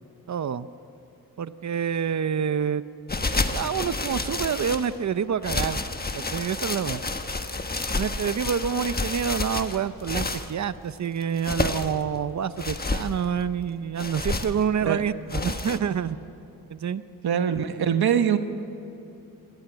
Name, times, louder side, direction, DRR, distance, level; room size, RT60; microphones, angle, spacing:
voice 1, 0.3-0.7 1.4-2.8 3.3-5.8 6.1-7.0 8.0-16.2 16.7-17.0, right 7 dB, 50° right, 13 dB, 0.7 m, -27 dB
sound 1, 3.1-4.9 5.4-10.5 11.2-12.0 12.6-13.1 14.0-14.6 15.3-15.8, left 3 dB, 25° left, 1.3 m, -29 dB
voice 2, 17.2-18.4, right 8 dB, 85° right, 8 dB, 1.2 m, -23 dB
25.0 x 19.0 x 9.0 m, 2.9 s
wide cardioid pair, 105°, 37 cm